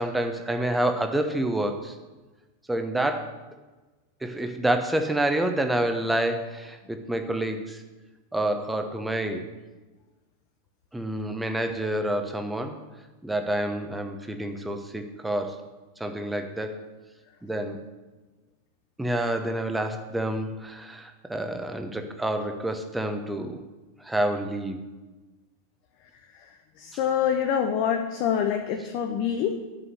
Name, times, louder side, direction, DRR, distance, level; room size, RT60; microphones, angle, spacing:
voice 1, 0.0-1.9 2.7-3.3 4.2-7.8 8.3-9.5 10.9-12.8 13.2-15.6 16.0-16.8 17.4-17.8 19.0-23.6 24.0-24.8, right 1 dB, 5° right, 6 dB, 1.0 m, -28 dB
voice 2, 26.8-29.5, left 8 dB, 45° left, 4 dB, 0.8 m, -25 dB
8.4 x 5.6 x 8.0 m, 1.2 s
figure-of-eight pair, 90°, 0 cm